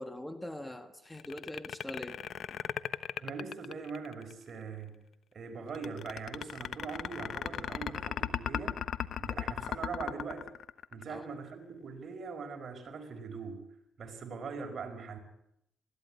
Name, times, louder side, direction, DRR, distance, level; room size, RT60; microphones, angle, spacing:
voice 1, 0.0-2.2 11.1-11.2, left 1 dB, 10° left, 8 dB, 1.6 m, -42 dB
sound 1, 1.1-4.3 5.7-11.2, left 9 dB, 65° left, 1.0 m, -36 dB
voice 2, 3.2-5.0 5.3-8.8 9.2-10.5 10.9-13.7 14.0-15.2, right 5 dB, 50° right, 4 dB, 5.0 m, -41 dB
20.5 x 16.0 x 9.7 m, 0.81 s
cardioid pair, 90°, 0 cm